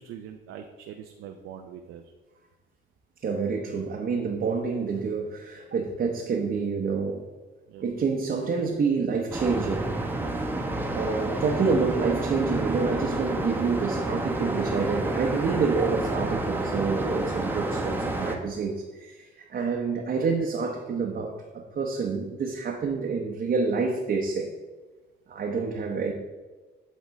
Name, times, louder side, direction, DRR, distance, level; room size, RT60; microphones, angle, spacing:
voice 1, 0.0-2.0 7.7-7.9, right 8 dB, 85° right, 4 dB, 0.5 m, -43 dB
voice 2, 3.2-7.3 7.8-9.9 10.9-24.5 25.3-26.1, right 4 dB, 50° right, 0 dB, 0.8 m, -28 dB
sound 1, 9.3-18.4, right 2 dB, 10° right, 0.9 m, -29 dB
8.3 x 3.8 x 4.0 m, 1.2 s
cardioid pair, 90°, 20 cm